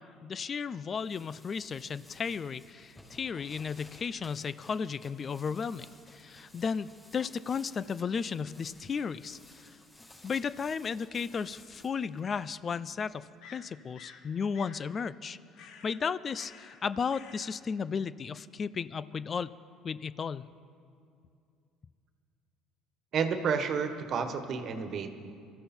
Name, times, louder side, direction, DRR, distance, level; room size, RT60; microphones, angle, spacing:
voice 1, 0.0-5.9 6.1-9.7 10.2-15.4 15.8-19.5 19.8-20.5, left 6 dB, 40° left, 16 dB, 0.5 m, -34 dB
sound 1, 0.7-13.3, left 1 dB, 15° left, 4.7 m, -57 dB
sound 2, 13.4-14.3 14.5-14.9 15.6-16.0 16.3-16.8 17.1-17.6, left 6 dB, 70° left, 1.5 m, -51 dB
voice 2, 23.1-25.3, right 6 dB, 55° right, 8 dB, 1.5 m, -31 dB
24.0 x 13.5 x 4.4 m, 2.4 s
hypercardioid pair, 70°, 0 cm